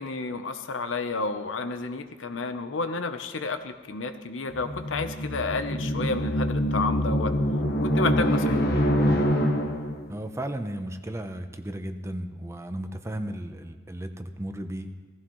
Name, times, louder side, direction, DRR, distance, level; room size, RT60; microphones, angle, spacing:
voice 1, 0.0-7.3 7.9-8.5, left 3 dB, 80° left, 8 dB, 0.8 m, -31 dB
sound 1, 4.5-10.1, equal, 60° left, 1.2 m, -25 dB
voice 2, 10.1-14.9, right 1 dB, 15° right, 7 dB, 0.7 m, -34 dB
17.0 x 15.0 x 3.1 m, 1.4 s
head